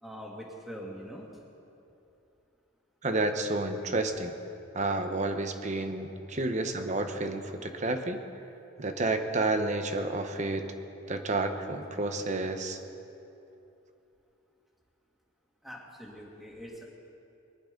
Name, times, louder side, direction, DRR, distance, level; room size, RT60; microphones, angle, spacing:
voice 1, 0.0-1.3 15.6-16.8, equal, ahead, -2 dB, 2.1 m, -43 dB
voice 2, 3.0-4.3 4.7-8.2 8.8-10.6 11.1-12.8, right 2 dB, 35° right, 6 dB, 1.0 m, -30 dB
22.0 x 11.0 x 5.3 m, 2.9 s
head